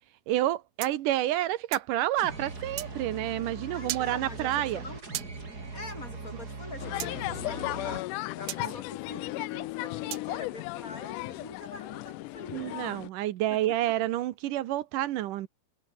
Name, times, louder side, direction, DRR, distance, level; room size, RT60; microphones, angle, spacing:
voice 1, 0.3-4.8 8.6-8.7 12.5-15.5, right 14 dB, 70° right, 2.5 m, -29 dB
sound 1, 0.8-1.9 2.8-2.9 3.9-4.1 5.1-5.3 7.0-7.1 8.5-8.6 10.1-10.3, right 13 dB, 90° right, 1.4 m, -36 dB
sound 2, 2.1-8.0, right 3 dB, 25° right, 4.1 m, -40 dB
voice 2, 3.7-5.0 5.7-12.8 13.5-13.8, left 2 dB, 20° left, 7.3 m, -45 dB
sound 3, 6.8-13.1, left 20 dB, 80° left, 1.9 m, -35 dB
omnidirectional pair, 4.1 m